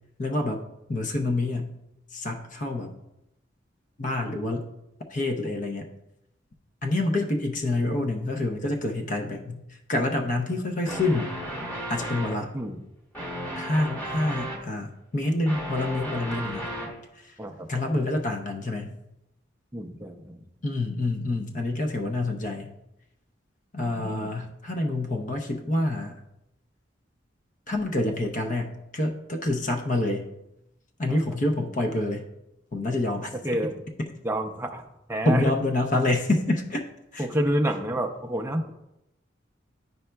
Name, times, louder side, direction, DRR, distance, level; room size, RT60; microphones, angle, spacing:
voice 1, 0.2-0.6 0.9-1.7 2.1-3.0 4.0-4.7 5.1-5.9 6.8-11.3 11.9-12.5 13.6-16.7 17.2-17.3 17.7-19.0 20.6-22.7 23.7-26.2 27.7-30.3 31.0-32.2 32.7-33.3 35.3-36.8 37.1-37.3, left 2 dB, 40° left, 4 dB, 0.6 m, -27 dB
sound 1, 10.8-12.5 13.1-14.6 15.2-17.0, equal, 10° left, 1.7 m, -34 dB
voice 2, 19.7-20.4 23.9-24.4 31.1-31.2 33.4-33.7 34.2-35.5 37.2-38.7, right 1 dB, 15° right, 3 dB, 0.4 m, -29 dB
9.3 x 5.5 x 2.2 m, 0.87 s
head